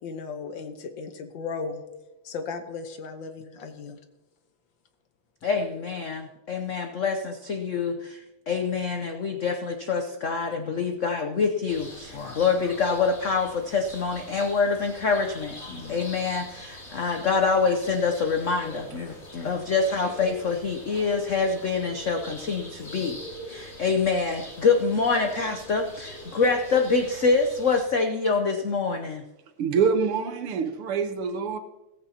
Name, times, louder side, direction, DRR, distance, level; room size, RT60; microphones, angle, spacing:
voice 1, 0.0-1.8 2.2-4.0, left 4 dB, 65° left, 8 dB, 1.6 m, -36 dB
voice 2, 5.4-23.2 23.5-29.2, left 4 dB, 80° left, 5 dB, 0.6 m, -26 dB
sound 1, 11.7-27.8, left 1 dB, 30° left, 3.1 m, -43 dB
voice 3, 29.6-31.6, right 6 dB, 85° right, 8 dB, 2.0 m, -25 dB
15.0 x 14.5 x 2.8 m, 1.0 s
omnidirectional pair, 2.4 m